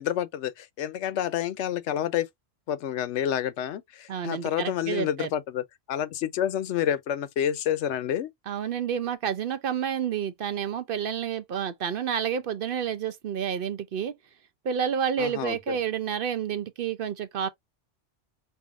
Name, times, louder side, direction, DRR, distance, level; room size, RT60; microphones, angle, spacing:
voice 1, 0.0-2.3 2.7-8.3 15.2-15.8, left 10 dB, 80° left, 0.9 m, -29 dB
voice 2, 4.1-5.3 8.5-14.1 14.6-17.5, right 8 dB, 60° right, 0.6 m, -29 dB
5.6 x 2.6 x 2.4 m
omnidirectional pair, 1.2 m